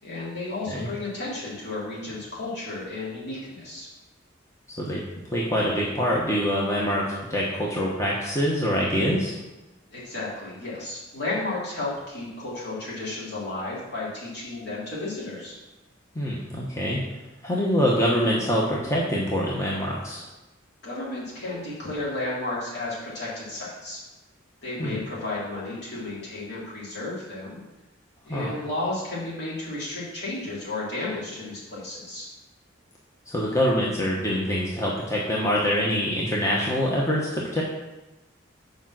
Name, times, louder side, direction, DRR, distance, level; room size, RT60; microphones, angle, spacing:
voice 1, 0.0-3.9 9.9-15.5 20.8-24.0 24.6-27.6 28.2-32.3, left 2 dB, 55° left, -7 dB, 3.2 m, -33 dB
voice 2, 5.3-9.3 16.1-17.0 17.4-20.3 24.8-25.0 28.3-28.5 33.3-37.6, equal, 15° left, -4 dB, 1.0 m, -25 dB
7.2 x 5.1 x 5.9 m, 1.0 s
head